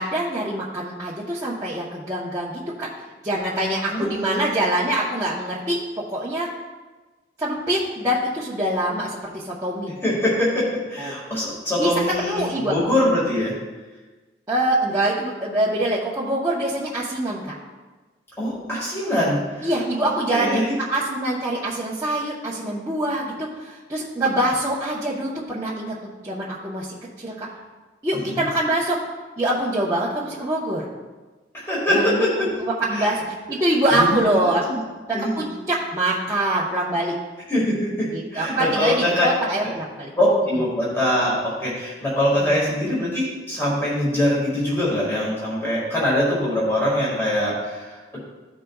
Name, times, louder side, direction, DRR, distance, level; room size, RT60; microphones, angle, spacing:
voice 1, 0.0-2.9 3.2-5.8 6.1-6.5 7.4-10.0 11.0-11.1 11.8-11.9 12.3-12.9 14.5-17.4 19.6-20.6 20.9-27.5 28.0-29.0 29.4-30.8 31.9-32.2 32.6-34.6 35.4-37.1 38.1-40.1 42.4-42.7, right 1 dB, 15° right, -9 dB, 1.0 m, -24 dB
voice 2, 3.9-4.6 10.0-13.6 18.4-19.7 20.0-20.7 28.1-28.4 31.5-32.5 32.9-33.2 33.9-34.8 35.1-35.4 37.5-39.3 39.6-39.7 40.2-48.2, left 1 dB, 15° left, -7 dB, 1.8 m, -23 dB
14.5 x 5.1 x 2.3 m, 1.3 s
head